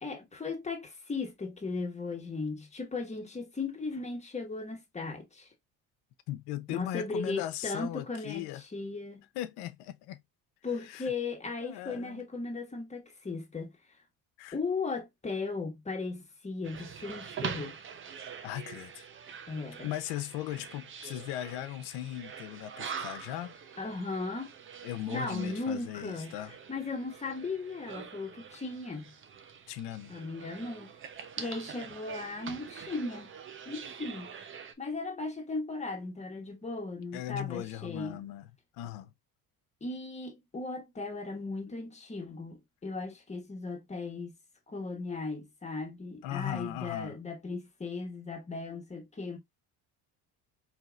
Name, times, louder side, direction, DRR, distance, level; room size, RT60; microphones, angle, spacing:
voice 1, 0.0-5.5 6.7-9.2 10.6-13.7 14.5-17.8 19.5-19.9 23.8-24.5 25.1-26.3 26.7-29.1 30.1-30.9 31.4-33.3 33.7-34.3 34.8-38.2 39.8-44.3 44.7-49.4, left 3 dB, 15° left, 1.4 m, -37 dB
voice 2, 6.3-8.6 9.3-10.2 10.9-11.1 11.6-12.2 14.4-14.6 18.4-19.1 19.8-23.6 24.8-26.5 29.7-30.1 37.1-39.1 46.2-47.2, left 13 dB, 75° left, 0.8 m, -38 dB
sound 1, 16.6-34.7, right 7 dB, 30° right, 0.7 m, -44 dB
4.6 x 2.9 x 2.4 m
cardioid pair, 110°, 39 cm